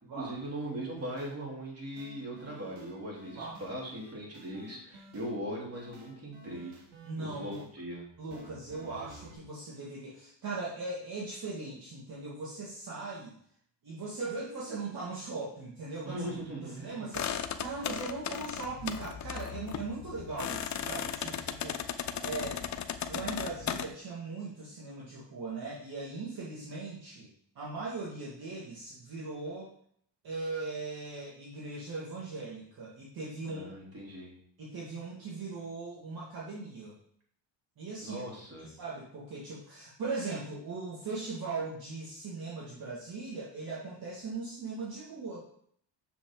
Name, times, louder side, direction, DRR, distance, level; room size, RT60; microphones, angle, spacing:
voice 1, 0.1-6.7 7.2-8.0 16.0-17.1 33.5-34.4 38.0-38.7, right 1 dB, 30° right, -3 dB, 3.7 m, -39 dB
sound 1, 1.0-1.3 2.0-5.3 5.7-7.7 8.3-9.3, right 2 dB, 80° right, 2.3 m, -51 dB
voice 2, 7.0-7.6 8.2-13.4 13.8-16.2 16.8-22.6 23.1-27.3 27.6-29.7 30.2-33.6 34.6-37.0 37.8-38.3 38.6-45.5, right 3 dB, 50° right, -5 dB, 2.2 m, -39 dB
sound 2, 17.1-23.9, left 8 dB, 40° left, 0.7 m, -36 dB
7.7 x 6.8 x 3.9 m, 0.64 s
cardioid pair, 105°, 45 cm